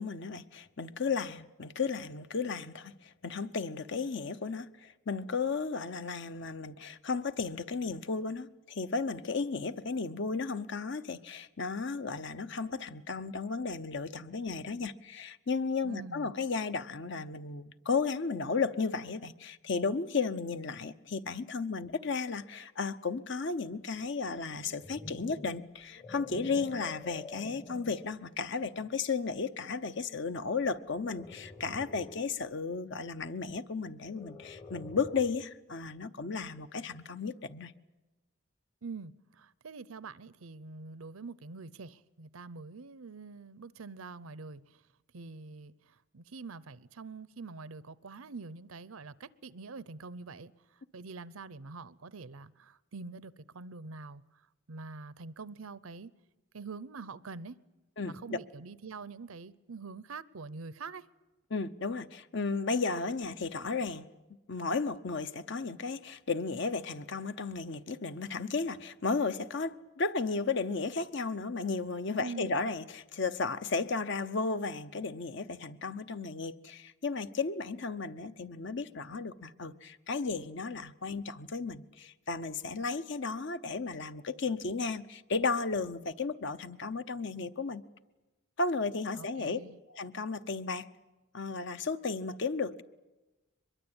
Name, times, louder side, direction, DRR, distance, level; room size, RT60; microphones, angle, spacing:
voice 1, 0.0-37.7 58.0-58.4 61.5-64.0 64.5-87.8 88.6-89.6 89.9-90.9 91.3-92.8, left 4 dB, 55° left, 0.8 m, -34 dB
voice 2, 15.8-16.3 38.8-44.8 45.1-50.5 50.9-54.4 54.7-56.1 56.5-57.6 58.0-61.1 72.2-72.5 89.1-89.8, right 4 dB, 85° right, 0.7 m, -45 dB
sound 1, 24.5-28.1 28.8-29.0 30.8-32.3 34.0-35.5, left 2 dB, 25° left, 1.0 m, -47 dB
23.5 x 22.0 x 8.8 m
head